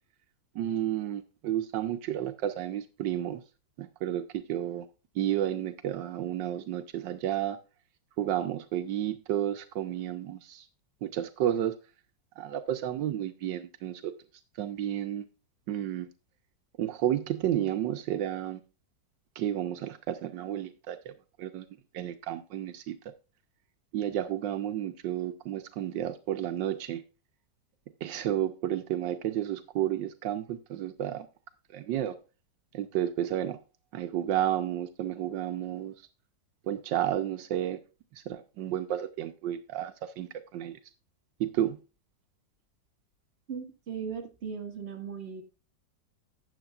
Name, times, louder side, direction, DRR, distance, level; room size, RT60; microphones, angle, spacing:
voice 1, 0.5-3.4 3.8-4.9 5.1-7.6 8.2-10.7 11.0-11.7 12.4-14.1 14.6-15.2 15.7-16.1 16.8-18.6 19.4-21.1 21.4-21.7 21.9-23.0 23.9-27.0 28.0-31.3 31.7-32.1 32.7-33.6 33.9-35.9 36.7-37.8 38.1-40.8 41.4-41.8, right 11 dB, 80° right, 1.4 m, -31 dB
voice 2, 43.5-45.4, right 6 dB, 35° right, 1.8 m, -38 dB
12.5 x 8.7 x 2.4 m
omnidirectional pair, 2.0 m